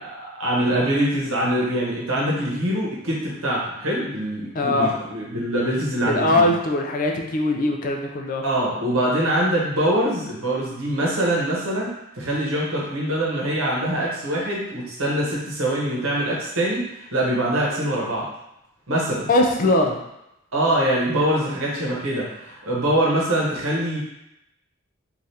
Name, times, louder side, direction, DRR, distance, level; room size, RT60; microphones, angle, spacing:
voice 1, 0.2-6.5 8.4-18.3 18.9-19.3 20.5-24.0, right 1 dB, 75° right, -4 dB, 1.0 m, -24 dB
voice 2, 4.6-4.9 6.1-8.4 19.3-20.0, left 2 dB, 40° left, 2 dB, 0.3 m, -21 dB
3.3 x 2.5 x 2.7 m, 0.86 s
head